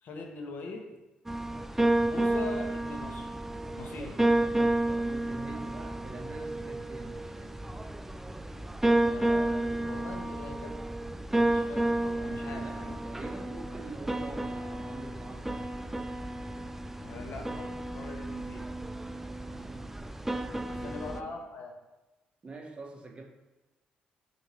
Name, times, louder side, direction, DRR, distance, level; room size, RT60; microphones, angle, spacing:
voice 1, 0.0-0.9 2.1-3.3 3.8-4.1 9.0-10.7 11.5-13.0 17.0-18.7 20.7-21.7, left 3 dB, 65° left, 2 dB, 1.2 m, -42 dB
sound 1, 1.3-21.2, right 1 dB, 10° right, 0.4 m, -31 dB
voice 2, 4.0-7.7 12.3-15.7 19.4-21.4 22.4-23.2, right 3 dB, 35° right, 1 dB, 1.2 m, -46 dB
6.8 x 2.9 x 4.8 m, 1.1 s
supercardioid pair, 65°, 3 cm